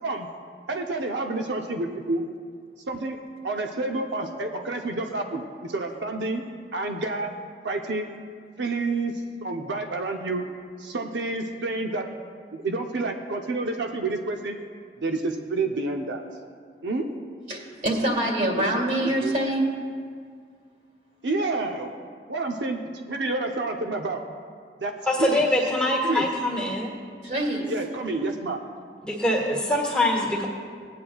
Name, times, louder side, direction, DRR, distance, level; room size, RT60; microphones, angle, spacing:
voice 1, 0.7-2.2 2.9-3.2 3.4-6.4 6.7-7.3 7.6-8.1 8.6-9.1 9.4-10.4 10.8-12.0 12.5-14.6 15.0-16.2 16.8-17.1 18.6-18.7 19.2-19.3 21.2-21.9 22.3-22.8 23.1-24.2 24.8-24.9 25.2-25.4 26.0-26.2 27.7-28.6, right 2 dB, 85° right, 3 dB, 0.7 m, -29 dB
voice 2, 17.5-19.7 27.2-27.7, right 1 dB, 45° right, -1 dB, 2.3 m, -25 dB
voice 3, 25.0-26.9 29.0-30.5, left 1 dB, 5° left, -4 dB, 1.5 m, -24 dB
19.5 x 9.3 x 2.4 m, 2.1 s
head